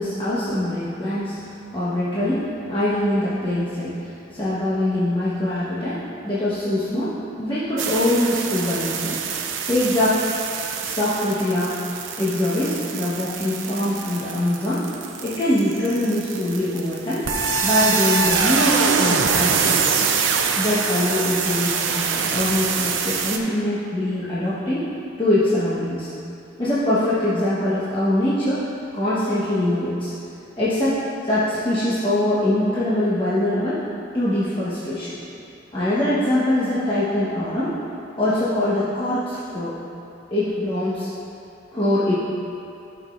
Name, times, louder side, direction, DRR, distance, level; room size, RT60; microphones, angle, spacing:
voice 1, 0.0-9.2 9.7-10.2 10.8-11.8 12.2-14.9 15.2-17.3 17.6-19.8 20.6-24.9 25.2-26.1 26.6-28.6 28.9-30.1 30.6-33.8 34.1-35.2 35.7-37.8 38.2-39.7 40.3-41.1 41.7-42.2, left 1 dB, 25° left, -11 dB, 1.2 m, -23 dB
sound 1, 7.8-23.4, right 5 dB, 75° right, 0.7 m, -24 dB
15.5 x 5.9 x 2.5 m, 2.7 s
head